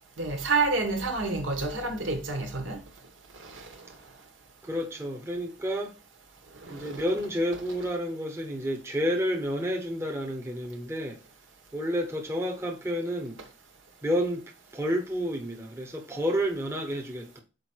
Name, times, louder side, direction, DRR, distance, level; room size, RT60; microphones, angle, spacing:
voice 1, 0.2-2.8 3.4-3.9 6.6-7.0, right 3 dB, 75° right, 1.7 m, -29 dB
voice 2, 4.6-5.9 6.7-11.2 11.7-13.4 14.0-14.4 14.7-17.4, equal, 15° right, 1.0 m, -30 dB
6.4 x 5.0 x 4.6 m
head